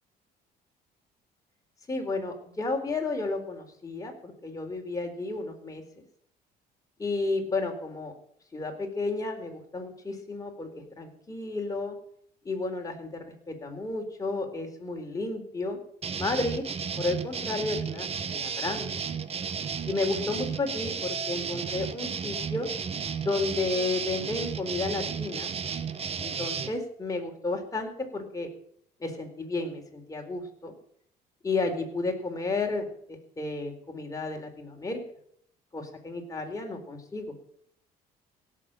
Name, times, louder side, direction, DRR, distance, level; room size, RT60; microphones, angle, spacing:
voice 1, 1.9-5.8 7.0-8.1 8.5-12.0 12.4-15.8 16.2-16.7 17.0-18.9 19.9-22.7 23.2-25.5 26.2-28.5 29.0-30.7 31.4-35.0 35.7-37.3, left 3 dB, 20° left, 2 dB, 4.0 m, -32 dB
sound 1, 16.0-26.7, right 6 dB, 35° right, 1.3 m, -33 dB
17.0 x 7.3 x 9.0 m, 0.66 s
cardioid pair, 110°, 17 cm